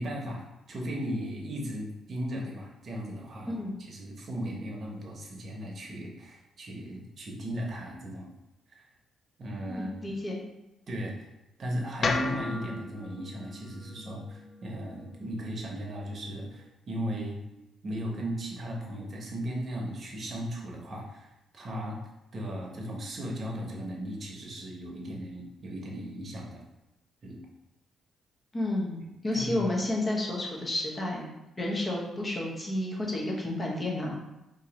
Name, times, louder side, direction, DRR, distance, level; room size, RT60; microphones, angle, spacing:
voice 1, 0.0-3.6 3.9-8.3 8.7-8.9 9.4-10.0 10.9-11.3 11.6-17.4 17.8-22.0 22.3-26.6 27.2-27.4 29.3-29.6, equal, 45° right, -1 dB, 0.9 m, -36 dB
voice 2, 3.5-3.8 9.7-10.4 28.5-31.3 31.6-34.2, left 1 dB, 25° left, -2 dB, 0.9 m, -31 dB
sound 1, 12.0-16.2, left 4 dB, 50° left, 0.3 m, -36 dB
2.8 x 2.7 x 3.9 m, 0.92 s
cardioid pair, 90°, 0 cm